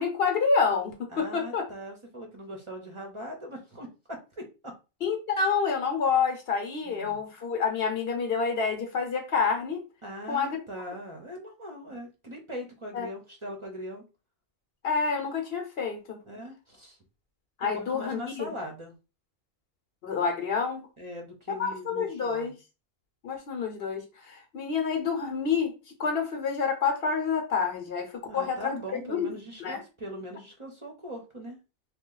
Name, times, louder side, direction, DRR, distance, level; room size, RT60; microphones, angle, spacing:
voice 1, 0.0-1.7 5.0-9.8 10.3-10.6 12.9-13.1 14.8-16.2 17.6-18.5 20.0-20.9 21.6-22.5 23.2-25.7 26.0-29.3 29.6-29.8, left 5 dB, 70° left, 1.1 m, -28 dB
voice 2, 1.1-4.7 6.8-7.2 10.0-14.0 16.3-17.0 17.6-19.0 21.0-22.5 28.2-31.6, equal, 30° right, 0.8 m, -40 dB
3.1 x 2.4 x 3.8 m
omnidirectional pair, 1.1 m